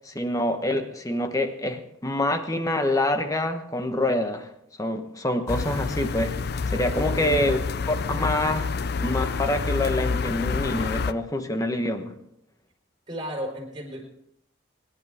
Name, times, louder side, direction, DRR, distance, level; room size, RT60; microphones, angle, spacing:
voice 1, 0.0-4.5 4.8-6.3 6.7-7.6 7.9-8.7 9.0-12.1, left 1 dB, 15° left, 7 dB, 1.2 m, -26 dB
sound 1, 5.5-11.1, left 4 dB, 55° left, 0.5 m, -28 dB
voice 2, 6.9-7.5 13.1-14.0, equal, 25° right, 0 dB, 4.2 m, -34 dB
24.5 x 11.0 x 3.6 m, 0.76 s
head